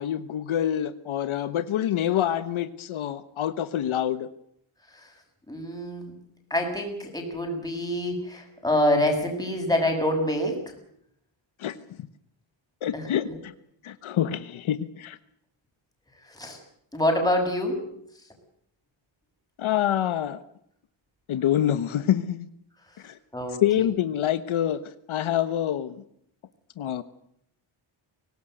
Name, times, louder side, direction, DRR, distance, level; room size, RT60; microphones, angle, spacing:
voice 1, 0.0-4.3 11.6-11.8 12.8-13.5 13.8-15.2 19.6-20.4 21.3-22.5 23.0-23.2 23.6-24.8 25.1-26.0 26.8-27.0, left 11 dB, 80° left, 12 dB, 1.3 m, -26 dB
voice 2, 5.5-6.1 6.5-10.6 12.9-13.4 16.3-16.6 16.9-17.8 23.3-23.9, left 1 dB, 10° left, 2 dB, 7.0 m, -26 dB
24.0 x 19.0 x 7.9 m, 0.71 s
wide cardioid pair, 140°, 48 cm